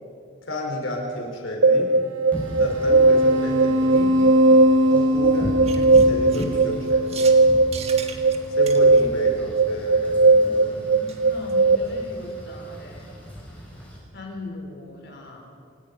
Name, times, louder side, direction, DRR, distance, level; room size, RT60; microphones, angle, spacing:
voice 1, 0.5-1.9 2.6-4.4 4.9-7.3 8.6-10.7, left 1 dB, 80° left, 1 dB, 4.9 m, -31 dB
sound 1, 1.6-11.8, right 2 dB, 85° right, 1.3 m, -18 dB
Wind / Rain, 2.3-14.0, equal, 5° left, 7.0 m, -37 dB
sound 2, 5.6-7.4 7.7-9.0 11.1-11.2 11.5-11.6 11.9-12.0 12.3-12.4, right 6 dB, 30° right, 1.5 m, -38 dB
voice 2, 10.2-13.2 14.1-15.4, left 2 dB, 55° left, 1 dB, 4.6 m, -40 dB
28.0 x 18.5 x 5.6 m, 2.2 s
head